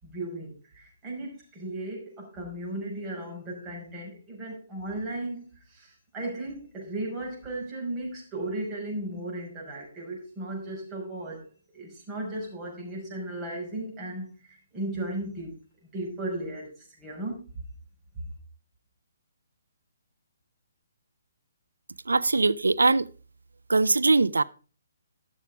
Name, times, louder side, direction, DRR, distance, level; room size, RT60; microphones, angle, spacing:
voice 1, 0.0-11.5 11.7-15.6 15.9-17.5, right 1 dB, 15° right, 5.3 m, -36 dB
voice 2, 22.1-23.0 23.7-24.4, right 3 dB, 75° right, 0.5 m, -21 dB
12.5 x 6.5 x 4.8 m
figure-of-eight pair, 135°, 0 cm